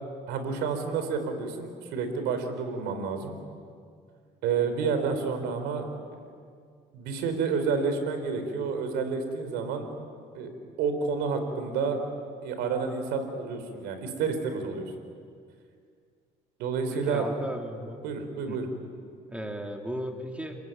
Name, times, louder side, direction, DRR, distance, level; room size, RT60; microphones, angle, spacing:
voice 1, 0.3-3.3 4.4-5.8 6.9-9.9 10.3-10.5 10.8-12.0 12.4-14.9 16.6-17.2 18.0-18.6, right 5 dB, 80° right, 7 dB, 4.4 m, -29 dB
voice 2, 16.9-18.0 18.5-18.6 19.3-20.6, equal, 5° right, 2 dB, 3.1 m, -35 dB
30.0 x 19.5 x 9.4 m, 2.2 s
cardioid pair, 95°, 17 cm